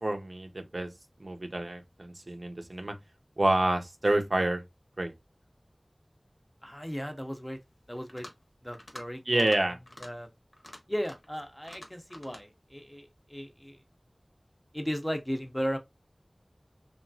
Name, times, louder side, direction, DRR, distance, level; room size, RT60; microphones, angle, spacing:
voice 1, 0.0-0.9 1.2-2.9 3.4-4.6 5.0-5.1 9.3-9.8, right 1 dB, 70° right, 0.5 m, -28 dB
voice 2, 6.6-7.6 7.9-8.3 8.6-9.5 10.0-10.3 10.9-13.8 14.7-15.8, equal, 10° left, 0.5 m, -36 dB
sound 1, 8.0-8.4 8.7-9.0 9.3-9.6 9.9-10.1 10.5-11.3 11.6-12.4, left 1 dB, 60° left, 0.8 m, -47 dB
2.8 x 2.3 x 2.6 m
wide cardioid pair, 45°, 0 cm